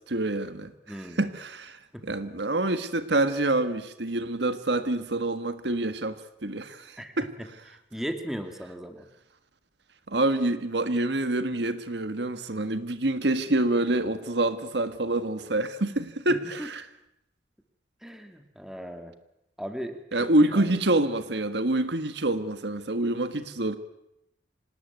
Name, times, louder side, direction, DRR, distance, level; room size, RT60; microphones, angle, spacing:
voice 1, 0.1-0.7 1.2-1.8 2.0-7.3 10.1-16.8 20.1-23.8, right 2 dB, 65° right, 1.5 m, -26 dB
voice 2, 0.9-1.2 1.9-2.0 7.0-7.5 7.9-9.1 16.3-16.7 18.0-19.1 19.6-20.0 20.4-20.7, equal, ahead, 2.2 m, -37 dB
26.5 x 18.5 x 9.4 m
head